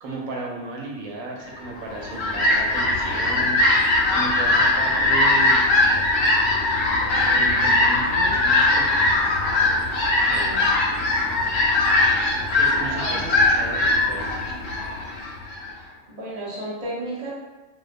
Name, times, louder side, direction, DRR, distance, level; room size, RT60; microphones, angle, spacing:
voice 1, 0.0-3.6 4.1-5.7 7.2-9.4 12.6-14.4, right 2 dB, 85° right, -2 dB, 1.0 m, -34 dB
Fowl, 1.8-15.7, left 2 dB, 65° left, 0.7 m, -20 dB
voice 2, 10.2-10.7 13.1-13.2 16.1-17.3, right 1 dB, 40° right, -7 dB, 0.6 m, -33 dB
2.3 x 2.2 x 2.5 m, 1.1 s
omnidirectional pair, 1.4 m